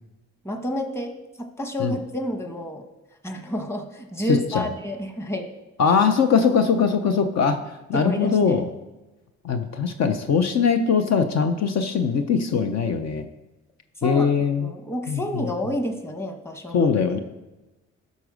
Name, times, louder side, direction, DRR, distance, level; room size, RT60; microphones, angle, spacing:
voice 1, 0.4-2.8 3.2-5.5 5.9-6.0 7.9-8.6 14.0-14.3 14.6-16.9, equal, 10° left, 4 dB, 1.2 m, -29 dB
voice 2, 4.3-4.7 5.8-7.6 7.9-8.7 9.4-13.3 14.0-14.7 15.1-15.5 16.7-17.2, left 6 dB, 60° left, 7 dB, 0.8 m, -21 dB
12.0 x 4.1 x 6.3 m, 1.1 s
cardioid pair, 90°, 30 cm